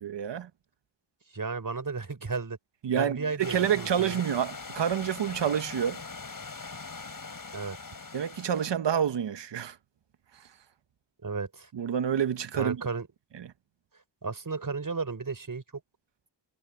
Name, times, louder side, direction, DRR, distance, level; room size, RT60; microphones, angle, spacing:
voice 1, 0.0-0.5 2.8-6.0 8.1-9.8 11.7-12.8 13.4-13.5, right 8 dB, 80° right, 1.1 m, -28 dB
voice 2, 1.3-2.6 2.9-4.2 7.5-8.0 11.2-11.7 12.5-13.1 14.2-15.6, right 4 dB, 50° right, 5.1 m, -34 dB
Stream / Liquid, 3.4-8.7, left 4 dB, 50° left, 5.0 m, -42 dB
cardioid pair, 55°, 43 cm